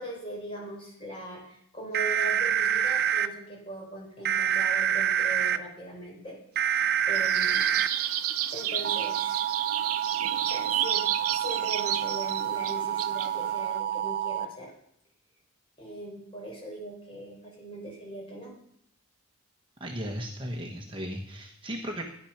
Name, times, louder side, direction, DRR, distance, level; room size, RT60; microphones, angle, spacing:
voice 1, 0.0-6.4 6.7-7.7 8.5-9.4 10.4-14.7 15.8-18.5, right 1 dB, 25° left, -2 dB, 4.3 m, -40 dB
sound 1, 1.9-3.3 4.2-5.6 6.6-7.9 8.8-14.4, right 9 dB, 45° right, 0.5 m, -27 dB
sound 2, 7.1-13.8, right 11 dB, 90° right, 0.7 m, -31 dB
voice 2, 19.8-22.0, equal, 25° right, 1 dB, 1.2 m, -36 dB
13.5 x 10.0 x 5.9 m, 0.72 s
head